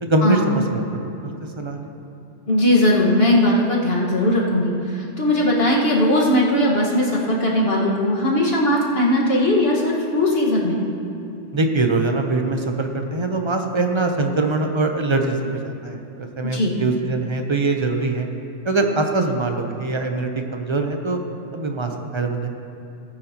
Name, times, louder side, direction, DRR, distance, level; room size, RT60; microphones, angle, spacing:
voice 1, 0.0-0.8 1.2-1.9 11.5-15.4 15.6-18.3 18.6-21.2 21.5-22.5, right 3 dB, 25° right, 4 dB, 0.8 m, -23 dB
voice 2, 2.5-10.8 16.4-16.8, left 1 dB, 50° left, -4 dB, 1.9 m, -19 dB
18.0 x 9.2 x 3.0 m, 2.9 s
omnidirectional pair, 1.3 m